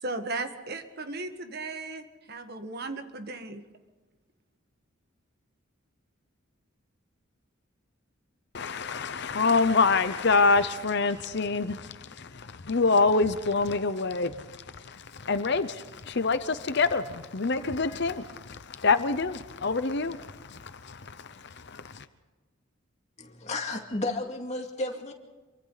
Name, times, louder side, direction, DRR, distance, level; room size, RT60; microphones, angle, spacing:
voice 1, 0.0-3.6, right 3 dB, 50° right, 1.6 m, -36 dB
voice 2, 8.5-22.0, left 4 dB, 55° left, 0.8 m, -26 dB
voice 3, 23.2-25.1, left 2 dB, 35° left, 2.4 m, -32 dB
27.0 x 24.0 x 4.1 m
head